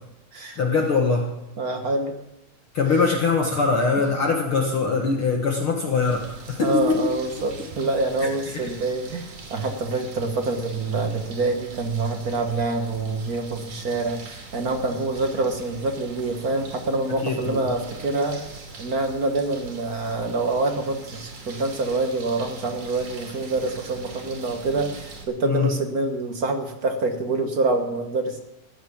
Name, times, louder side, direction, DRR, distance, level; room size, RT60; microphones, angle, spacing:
voice 1, 0.6-1.3 2.7-7.0 8.2-8.6 17.2-17.7 25.4-25.7, left 4 dB, 50° left, 2 dB, 2.0 m, -22 dB
voice 2, 1.6-2.1 6.6-18.4 18.8-28.4, right 3 dB, 50° right, 5 dB, 1.1 m, -26 dB
sound 1, 6.0-25.2, right 3 dB, 70° right, 4.1 m, -42 dB
15.5 x 10.5 x 7.2 m, 0.91 s
omnidirectional pair, 3.6 m